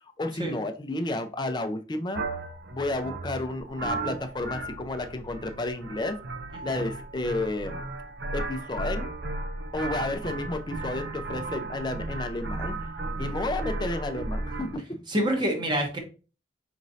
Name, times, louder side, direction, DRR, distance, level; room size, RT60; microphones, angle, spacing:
voice 1, 0.0-2.2 2.7-6.2 6.6-7.8 8.3-9.1 9.7-12.9 13.2-14.8, left 2 dB, 25° left, 7 dB, 0.5 m, -31 dB
sound 1, 2.1-14.8, right 2 dB, 70° right, 0.6 m, -35 dB
voice 2, 15.1-16.0, equal, 25° right, 3 dB, 1.0 m, -27 dB
5.1 x 3.1 x 2.7 m, 0.34 s
head